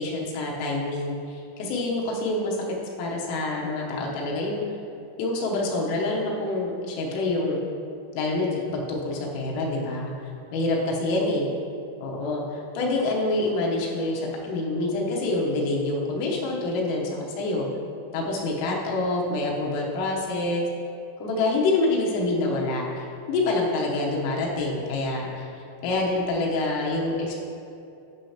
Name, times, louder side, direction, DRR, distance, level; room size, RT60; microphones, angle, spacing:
voice 1, 0.0-2.6 3.0-4.6 5.2-7.6 8.2-10.1 10.5-11.5 12.0-17.7 18.1-20.7 21.2-25.5 25.8-27.3, left 2 dB, 85° left, -2 dB, 3.5 m, -26 dB
12.0 x 5.6 x 2.9 m, 2.6 s
omnidirectional pair, 5.8 m